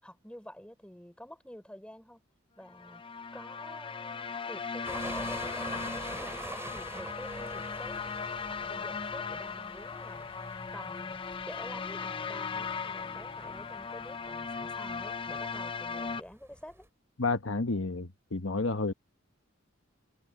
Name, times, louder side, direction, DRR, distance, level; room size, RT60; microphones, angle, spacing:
voice 1, 0.0-2.2 2.6-8.1 8.5-10.3 10.7-11.2 11.5-16.9, equal, 5° left, 5.3 m, -48 dB
sound 1, 2.7-16.2, left 5 dB, 25° left, 0.5 m, -38 dB
sound 2, 4.8-16.9, right 2 dB, 15° right, 7.3 m, -46 dB
voice 2, 17.2-18.9, left 3 dB, 75° left, 1.2 m, -30 dB
head